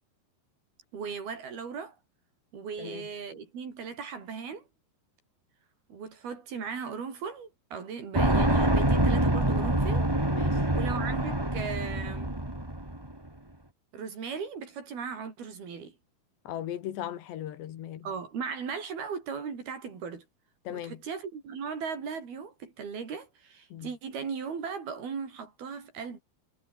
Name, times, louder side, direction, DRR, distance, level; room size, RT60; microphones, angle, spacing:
voice 1, 0.9-1.9 2.5-4.6 5.9-10.1 10.7-12.4 13.9-16.0 18.0-20.3 20.7-26.2, right 6 dB, 65° right, 6.5 m, -37 dB
sound 1, 8.1-13.1, right 1 dB, 5° right, 2.2 m, -26 dB
voice 2, 10.3-10.7 16.5-18.1 20.7-21.0 23.7-23.9, left 11 dB, 85° left, 4.3 m, -38 dB
omnidirectional pair, 4.8 m